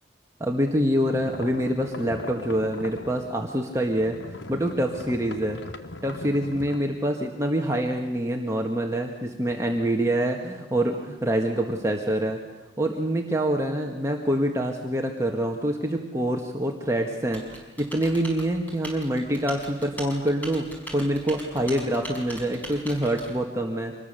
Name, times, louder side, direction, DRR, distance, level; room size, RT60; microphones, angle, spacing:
voice 1, 0.4-4.2 4.5-5.6 6.0-12.4 12.8-20.7 20.9-23.9, right 1 dB, 15° right, 1 dB, 1.7 m, -26 dB
sound 1, 1.1-3.5 3.8-6.8, left 2 dB, 85° left, 1.4 m, -40 dB
Typing, 17.3-23.3, right 1 dB, 10° left, 5.5 m, -40 dB
26.0 x 21.0 x 6.9 m, 1.2 s
head